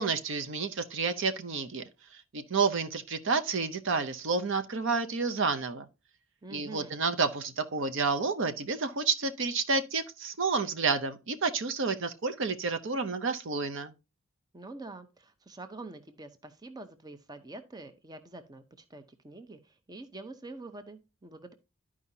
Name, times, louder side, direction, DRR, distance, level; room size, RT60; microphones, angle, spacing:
voice 1, 0.0-1.8 2.1-5.9 6.5-13.9, right 4 dB, 60° right, 0.7 m, -30 dB
voice 2, 6.4-7.0 14.5-21.5, right 2 dB, 20° right, 0.6 m, -46 dB
12.5 x 4.9 x 2.7 m
head